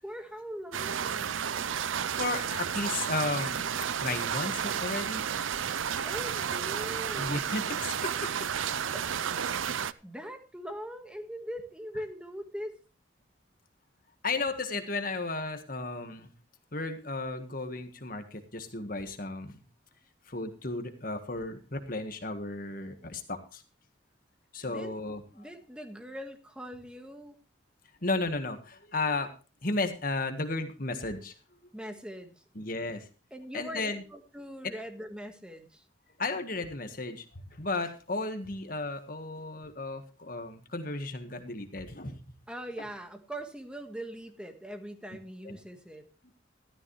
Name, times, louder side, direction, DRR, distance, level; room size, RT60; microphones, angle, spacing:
voice 1, 0.0-1.4 6.1-7.4 8.9-9.1 10.0-12.8 24.6-24.9 25.3-27.4 31.7-32.3 33.3-35.8 42.5-46.0, equal, 5° right, 5 dB, 1.6 m, -41 dB
sound 1, 0.7-9.9, right 8 dB, 90° right, 0.6 m, -32 dB
voice 2, 2.2-3.6 4.0-5.2 7.2-8.9 14.2-16.3 16.7-19.6 20.3-23.6 24.5-25.2 28.0-29.3 29.6-31.3 32.6-33.1 33.5-34.0 34.6-34.7 36.2-42.2 42.8-42.9 45.4-45.6 46.2-46.3, left 2 dB, 45° left, 7 dB, 1.6 m, -34 dB
14.0 x 13.0 x 3.3 m, 0.33 s
head